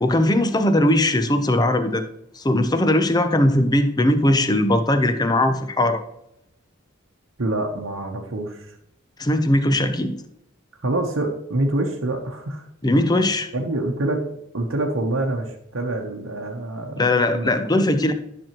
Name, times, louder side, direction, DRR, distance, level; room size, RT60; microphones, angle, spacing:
voice 1, 0.0-2.0 2.4-6.0 9.2-10.2 12.8-13.5 17.0-18.1, left 1 dB, 20° left, 9 dB, 0.6 m, -19 dB
voice 2, 7.4-8.7 10.8-12.7 13.5-14.2 14.5-17.5 17.8-17.9, right 2 dB, 85° right, 0 dB, 1.0 m, -26 dB
10.5 x 6.1 x 3.0 m, 0.78 s
head